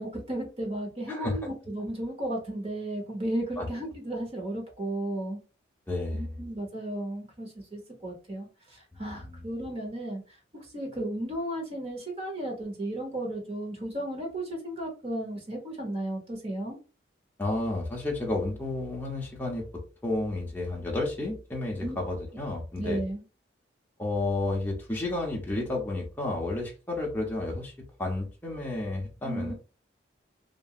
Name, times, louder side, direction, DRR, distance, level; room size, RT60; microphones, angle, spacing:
voice 1, 0.0-5.4 6.1-10.2 10.5-16.8 21.8-22.0 22.8-23.2 29.2-29.5, right 1 dB, 30° right, 0 dB, 0.9 m, -34 dB
voice 2, 5.9-6.4 8.9-9.4 17.4-23.0 24.0-27.7 28.0-29.5, left 2 dB, 10° left, -1 dB, 0.6 m, -31 dB
2.8 x 2.5 x 2.4 m, 0.33 s
head